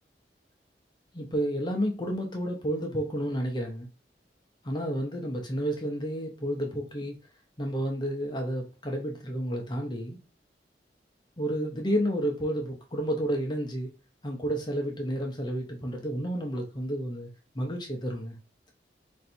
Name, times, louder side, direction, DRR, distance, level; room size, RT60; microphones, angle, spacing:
voice 1, 1.1-3.9 4.6-7.2 7.6-10.2 11.4-13.9 14.2-17.3 17.5-18.4, equal, 25° left, 0.6 m, -31 dB
3.2 x 2.6 x 4.2 m
head